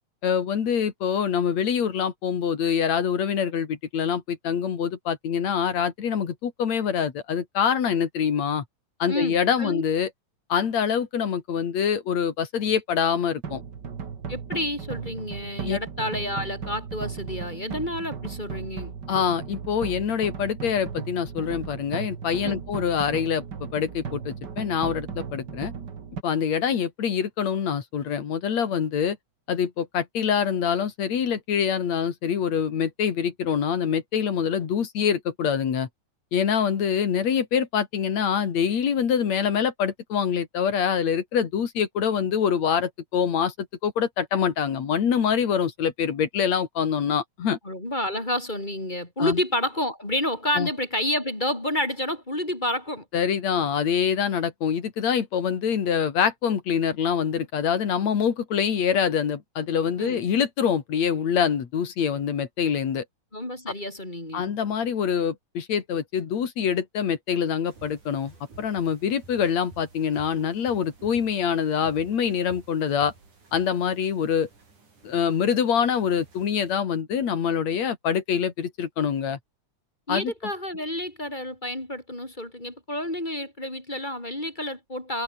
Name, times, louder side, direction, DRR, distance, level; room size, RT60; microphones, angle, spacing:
voice 1, 0.2-8.6 9.0-10.1 10.5-13.6 15.7-15.8 19.1-23.5 23.7-25.7 26.2-29.2 29.5-35.9 36.3-47.6 49.2-49.4 50.6-50.7 53.1-63.1 64.3-73.1 73.5-74.5 75.0-79.4 80.1-80.3, left 7 dB, 65° left, 3.5 m, -25 dB
voice 2, 9.1-9.8 14.3-18.9 22.4-22.6 47.6-53.1 60.0-60.2 63.3-64.5 80.1-85.2, left 1 dB, 15° left, 4.4 m, -29 dB
sound 1, 13.4-26.2, right 6 dB, 40° right, 2.3 m, -36 dB
sound 2, 67.6-76.8, right 3 dB, 85° right, 8.9 m, -52 dB
omnidirectional pair, 3.4 m